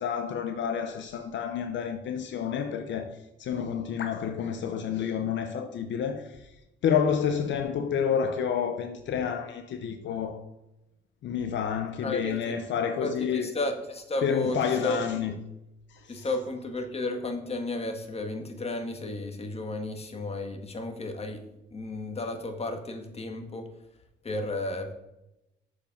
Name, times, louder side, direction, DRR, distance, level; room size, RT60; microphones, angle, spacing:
voice 1, 0.0-6.5 6.8-10.4 11.2-13.5 14.2-15.3 15.9-16.3, left 7 dB, 65° left, 0.7 m, -29 dB
voice 2, 12.0-12.5 13.0-14.6 14.8-15.2 16.1-21.4 21.7-23.7 24.2-24.9, left 2 dB, 30° left, 1.4 m, -33 dB
6.9 x 5.1 x 5.3 m
cardioid pair, 90°, 20 cm